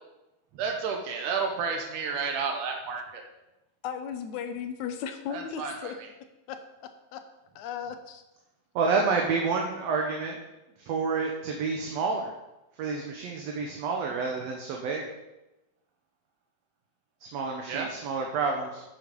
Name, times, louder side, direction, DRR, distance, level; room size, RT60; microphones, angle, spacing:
voice 1, 0.6-3.2 5.3-5.9 17.7-17.9, right 5 dB, 85° right, 3 dB, 2.7 m, -31 dB
voice 2, 3.8-6.0 6.5-6.6 7.1-7.2 7.6-8.2, left 8 dB, 75° left, 8 dB, 2.1 m, -35 dB
voice 3, 8.8-10.4 10.8-12.3 12.8-15.1 17.2-18.8, right 4 dB, 65° right, 1 dB, 2.0 m, -29 dB
10.5 x 8.2 x 5.3 m, 0.98 s
omnidirectional pair, 3.5 m